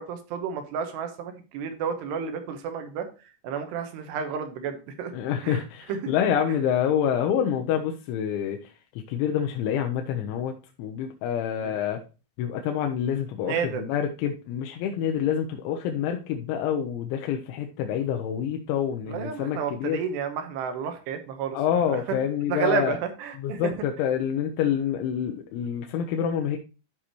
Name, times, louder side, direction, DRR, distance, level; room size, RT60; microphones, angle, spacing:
voice 1, 0.0-3.1 3.4-5.1 5.4-5.6 5.9-6.1 6.5-6.6 11.6-11.7 13.4-13.8 19.1-21.6 21.8-22.2 22.5-23.7, right 6 dB, 75° right, 7 dB, 3.0 m, -31 dB
voice 2, 5.1-8.6 9.1-10.5 10.8-12.0 12.4-20.0 21.5-23.0 23.4-26.6, left 9 dB, 85° left, 4 dB, 3.1 m, -27 dB
13.5 x 4.9 x 2.9 m, 0.32 s
omnidirectional pair, 5.2 m